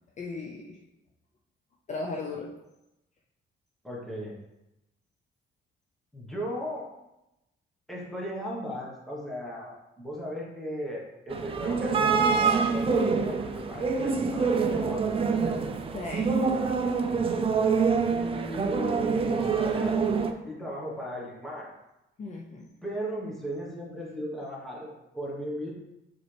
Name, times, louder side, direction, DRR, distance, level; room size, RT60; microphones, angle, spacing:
voice 1, 0.2-0.8 1.9-2.5 15.9-16.4 22.2-22.7, left 3 dB, 35° left, -1 dB, 0.5 m, -36 dB
voice 2, 3.8-4.4 6.1-6.9 7.9-15.7 18.1-20.1 20.4-21.7 22.8-25.7, equal, ahead, -4 dB, 1.2 m, -36 dB
sound 1, 11.3-20.3, right 5 dB, 25° right, 0.4 m, -26 dB
6.6 x 4.3 x 3.3 m, 0.92 s
cardioid pair, 175°, 21 cm